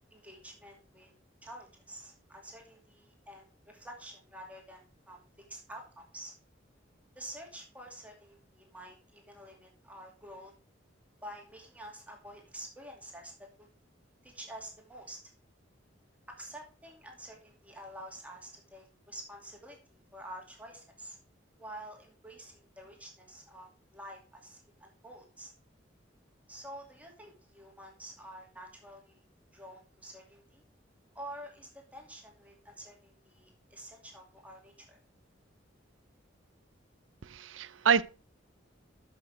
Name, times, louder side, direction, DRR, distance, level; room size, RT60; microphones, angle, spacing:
voice 1, 0.1-1.1 1.4-6.3 7.1-10.5 11.2-13.7 14.2-15.2 16.3-21.2 21.6-25.5 26.5-29.2 29.5-30.6 31.1-35.0, right 1 dB, 10° right, 2.5 m, -48 dB
voice 2, 37.2-38.0, right 6 dB, 85° right, 0.6 m, -27 dB
12.5 x 6.2 x 3.5 m
head